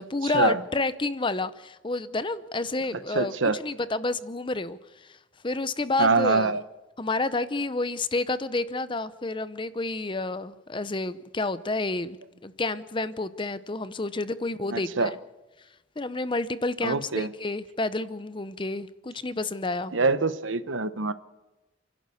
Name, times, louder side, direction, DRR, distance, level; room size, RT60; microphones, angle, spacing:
voice 1, 0.0-4.8 5.1-5.2 5.4-6.5 7.0-12.2 12.4-15.2 16.0-19.9, left 2 dB, 25° left, 0.7 m, -29 dB
voice 2, 3.1-3.6 6.0-6.6 14.7-15.1 16.8-17.3 19.9-21.1, right 3 dB, 80° right, 1.0 m, -24 dB
29.5 x 11.5 x 8.4 m
head